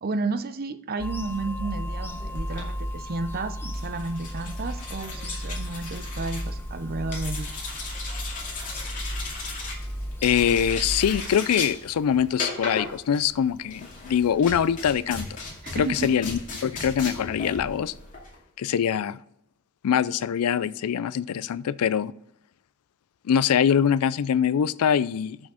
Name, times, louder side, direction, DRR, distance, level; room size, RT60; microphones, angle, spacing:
voice 1, 0.0-7.5 15.6-16.1, right 3 dB, 45° right, 11 dB, 0.6 m, -32 dB
Bird vocalization bird call bird song / Telephone, 1.0-11.2, equal, 10° left, 0.8 m, -34 dB
sound 1, 2.4-18.4, left 3 dB, 40° left, 2.4 m, -37 dB
voice 2, 10.2-15.3 15.7-17.9 18.6-19.2 19.8-22.1 23.2-25.4, left 8 dB, 80° left, 18 dB, 0.4 m, -23 dB
6.3 x 6.1 x 7.0 m, 0.74 s
head